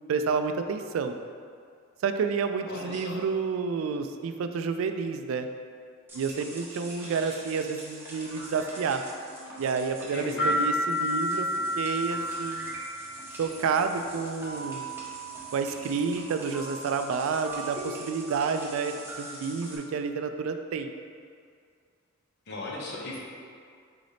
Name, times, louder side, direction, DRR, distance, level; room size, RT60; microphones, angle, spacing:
voice 1, 0.1-1.1 2.0-5.5 6.1-9.0 9.6-11.5 11.8-12.7 13.4-14.9 15.5-20.9, right 5 dB, 70° right, 8 dB, 0.3 m, -29 dB
voice 2, 2.7-3.2 10.1-10.5 22.5-23.2, left 2 dB, 50° left, -3 dB, 0.8 m, -37 dB
sound 1, 6.1-19.8, right 2 dB, 10° right, 0.7 m, -42 dB
sound 2, 10.4-13.0, left 1 dB, 10° left, 1.3 m, -29 dB
3.9 x 3.3 x 3.9 m, 2.2 s
head